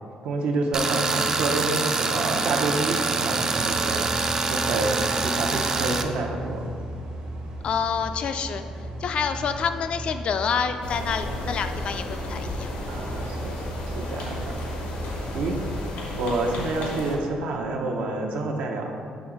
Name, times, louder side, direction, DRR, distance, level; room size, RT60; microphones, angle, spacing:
voice 1, 0.2-6.6 12.9-14.6 15.3-15.6 16.2-18.9, right 2 dB, 80° right, 1 dB, 0.7 m, -28 dB
Tools, 0.7-6.0, right 4 dB, 30° right, 0.3 m, -25 dB
sound 1, 3.6-15.9, right 1 dB, 60° right, 0.9 m, -36 dB
voice 2, 7.6-8.6 9.0-12.7, left 6 dB, 50° left, 9 dB, 0.3 m, -27 dB
sound 2, 10.8-17.2, left 1 dB, 90° left, 0.9 m, -34 dB
6.2 x 3.1 x 4.9 m, 2.4 s
cardioid pair, 125°, 2 cm